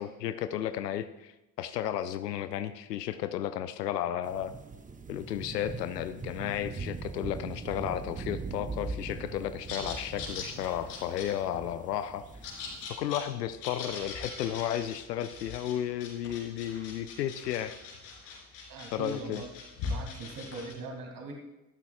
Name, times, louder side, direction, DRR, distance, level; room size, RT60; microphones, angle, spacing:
voice 1, 0.0-1.3 1.6-4.5 5.1-12.2 13.0-17.7 18.9-19.4, left 11 dB, 80° left, 12 dB, 0.6 m, -33 dB
sound 1, 4.2-12.9, right 4 dB, 15° right, 0.9 m, -41 dB
sound 2, 9.7-20.7, left 4 dB, 65° left, 3.5 m, -41 dB
voice 2, 18.7-19.5 19.8-21.3, right 3 dB, 40° right, 3 dB, 2.3 m, -41 dB
12.5 x 12.0 x 2.4 m, 0.95 s
figure-of-eight pair, 55°, 49 cm